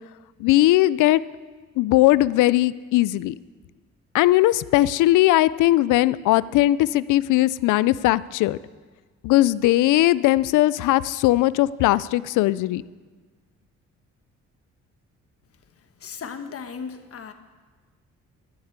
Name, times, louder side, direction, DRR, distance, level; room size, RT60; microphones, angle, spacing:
voice 1, 0.4-1.2 1.8-3.4 4.1-8.6 9.2-12.8, left 16 dB, 85° left, 19 dB, 0.5 m, -19 dB
voice 2, 16.0-17.3, left 6 dB, 50° left, 8 dB, 1.3 m, -36 dB
13.0 x 8.2 x 8.0 m, 1.4 s
cardioid pair, 90°, 30 cm